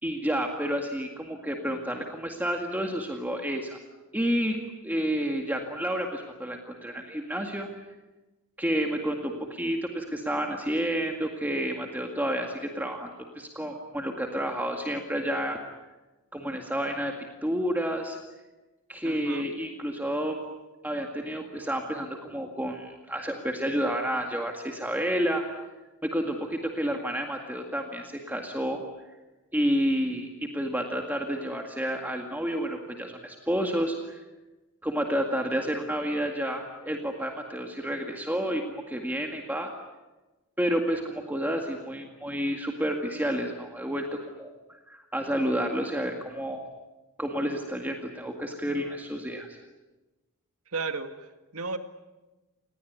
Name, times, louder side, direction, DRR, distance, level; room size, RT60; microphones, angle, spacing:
voice 1, 0.0-3.8 4.1-4.6 4.8-7.7 8.6-13.1 13.4-15.6 16.3-17.1 17.4-18.2 18.9-20.4 20.8-25.5 26.0-28.8 29.5-34.2 34.8-39.7 40.6-44.5 44.9-46.6 47.2-49.6, equal, 10° right, 2 dB, 2.0 m, -30 dB
voice 2, 19.0-19.5 35.6-35.7 50.7-51.8, right 4 dB, 80° right, 7 dB, 2.2 m, -34 dB
28.5 x 19.5 x 9.5 m, 1.1 s
head